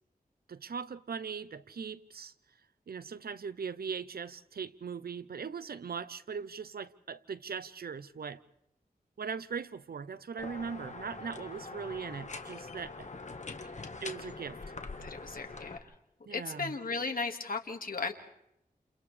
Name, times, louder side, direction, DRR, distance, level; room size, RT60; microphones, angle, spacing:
voice 1, 0.5-2.3 2.9-8.4 9.2-13.1 14.0-14.6 16.3-16.7, right 6 dB, 80° right, 0.7 m, -40 dB
sound 1, 10.4-15.8, left 3 dB, 50° left, 1.5 m, -43 dB
voice 2, 15.0-15.8 16.3-18.1, left 4 dB, 65° left, 1.9 m, -36 dB
30.0 x 29.0 x 3.3 m
wide cardioid pair, 65°, 16 cm